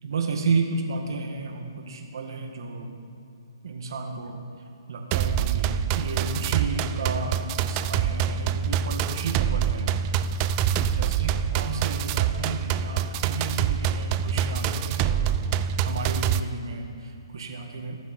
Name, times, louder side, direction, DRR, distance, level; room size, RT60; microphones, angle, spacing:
voice 1, 0.0-2.9 3.6-4.4 4.9-7.4 7.7-9.9 10.7-15.2 15.8-18.0, right 4 dB, 65° right, 4 dB, 1.6 m, -32 dB
sound 1, 5.1-16.4, right 8 dB, 25° right, 0.3 m, -26 dB
19.0 x 7.3 x 4.3 m, 2.7 s
hypercardioid pair, 145°, 3 cm